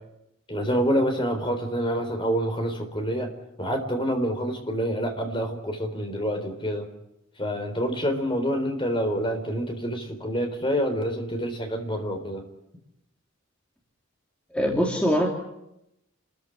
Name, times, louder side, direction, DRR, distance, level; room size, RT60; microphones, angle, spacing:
voice 1, 0.5-3.3 3.6-6.9 7.4-12.4, equal, 25° left, 5 dB, 3.9 m, -27 dB
voice 2, 14.5-15.3, equal, 5° left, 0 dB, 2.7 m, -22 dB
29.0 x 14.5 x 10.0 m, 0.84 s
head